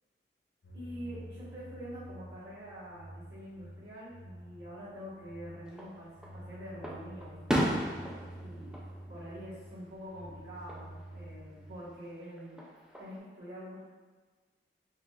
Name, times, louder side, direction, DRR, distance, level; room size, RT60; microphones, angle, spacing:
sound 1, 0.6-11.8, right 1 dB, 65° left, 0.5 m, -49 dB
voice 1, 0.7-7.7 8.4-8.8 9.1-12.6 13.0-13.8, equal, 70° right, -12 dB, 1.3 m, -46 dB
Fireworks, 5.7-6.4 6.8-10.0 10.3-10.8 12.4-13.2, equal, 5° right, 0.3 m, -35 dB
3.5 x 2.9 x 2.3 m, 1.4 s
head